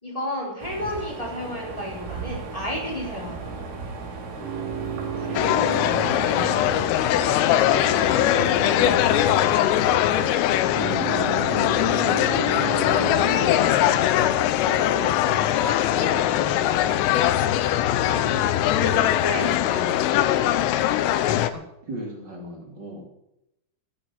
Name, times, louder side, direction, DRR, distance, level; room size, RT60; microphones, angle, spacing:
voice 1, 0.0-3.6 18.1-20.2, left 1 dB, 10° left, -2 dB, 3.2 m, -32 dB
sound 1, 0.6-10.4, right 3 dB, 85° right, 5.5 m, -36 dB
sound 2, 4.4-7.8 10.7-13.5, right 7 dB, 50° right, 6.6 m, -33 dB
voice 2, 5.1-6.6 7.8-9.1 10.6-11.5 12.3-14.0 14.6-15.5 15.8-16.9 21.5-21.6 21.9-23.1, equal, 30° right, 0 dB, 2.4 m, -37 dB
sound 3, 5.4-21.5, left 12 dB, 90° left, 3.4 m, -21 dB
11.0 x 9.7 x 9.9 m, 0.82 s
omnidirectional pair, 5.8 m